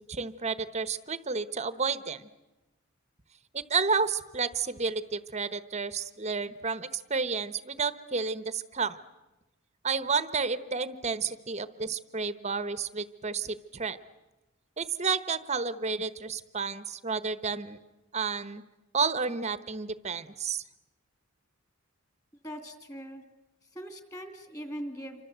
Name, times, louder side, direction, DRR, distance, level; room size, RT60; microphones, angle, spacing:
voice 1, 0.0-2.3 3.5-9.0 9.8-14.0 14.8-17.8 18.1-18.6 18.9-20.6, right 5 dB, 30° right, 14 dB, 1.0 m, -31 dB
voice 2, 22.4-23.2 23.7-25.2, equal, 15° left, 7 dB, 2.9 m, -40 dB
28.0 x 25.0 x 8.1 m, 1.0 s
head